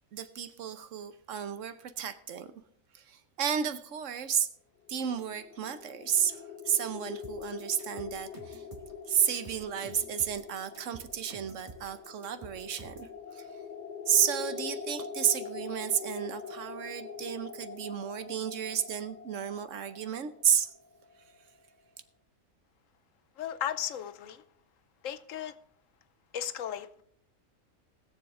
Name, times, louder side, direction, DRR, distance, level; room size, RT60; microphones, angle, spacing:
voice 1, 0.1-2.5 2.9-4.5 4.9-8.6 9.1-13.5 14.1-20.7, right 8 dB, 70° right, 1.2 m, -32 dB
sound 1, 4.8-21.7, left 5 dB, 35° left, 1.0 m, -44 dB
sound 2, 7.2-13.1, right 4 dB, 25° right, 1.7 m, -50 dB
voice 2, 23.4-24.4 25.0-25.5 26.3-27.0, left 9 dB, 75° left, 1.1 m, -35 dB
20.0 x 7.0 x 3.7 m
omnidirectional pair, 1.4 m